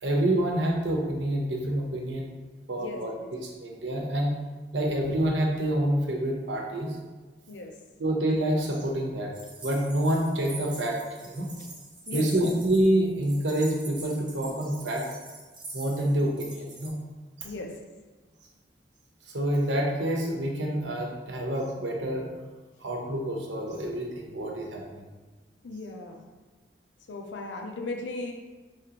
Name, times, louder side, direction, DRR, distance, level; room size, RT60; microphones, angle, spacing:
voice 1, 0.0-2.3 2.7-4.4 4.7-7.0 8.0-9.3 9.6-11.5 12.1-15.0 15.7-16.9 19.3-22.3 22.8-25.0, right 1 dB, 80° right, 0 dB, 0.8 m, -27 dB
voice 2, 2.8-3.3 7.5-7.7 11.6-11.7 12.1-12.5 16.0-16.3 17.4-17.7 25.6-26.2 27.1-28.3, left 3 dB, 80° left, 2 dB, 0.6 m, -37 dB
sound 1, 9.3-12.9 13.2-16.9, right 3 dB, 25° right, 0.7 m, -44 dB
4.9 x 3.1 x 2.9 m, 1.3 s
head